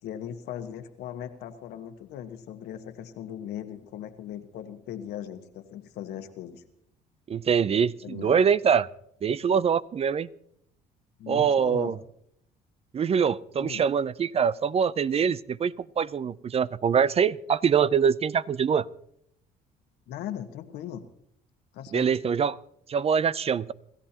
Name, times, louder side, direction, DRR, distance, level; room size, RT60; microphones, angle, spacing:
voice 1, 0.0-6.6 8.0-8.4 11.2-12.0 13.6-13.9 20.1-21.0 21.7-22.1, left 10 dB, 80° left, 8 dB, 1.4 m, -38 dB
voice 2, 7.3-8.9 9.2-10.3 11.3-11.9 12.9-18.9 21.9-22.6 22.9-23.7, right 7 dB, 35° right, 18 dB, 0.5 m, -24 dB
27.5 x 14.0 x 2.9 m, 0.72 s
cardioid pair, 85°, 17 cm